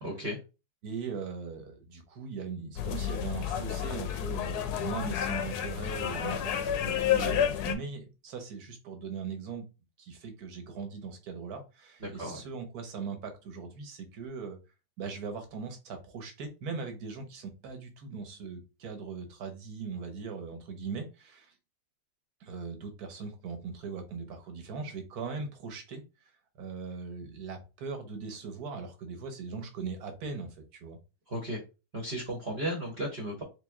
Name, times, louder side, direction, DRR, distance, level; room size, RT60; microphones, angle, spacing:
voice 1, 0.0-0.4 12.0-12.4 31.3-31.6 31.9-33.4, right 1 dB, 40° right, 1.1 m, -35 dB
voice 2, 0.8-9.7 10.0-14.6 15.0-21.5 22.4-26.0 26.6-31.0, right 5 dB, 60° right, 1.3 m, -40 dB
sound 1, 2.8-7.7, left 9 dB, 70° left, 1.0 m, -30 dB
3.7 x 3.1 x 3.5 m
omnidirectional pair, 2.0 m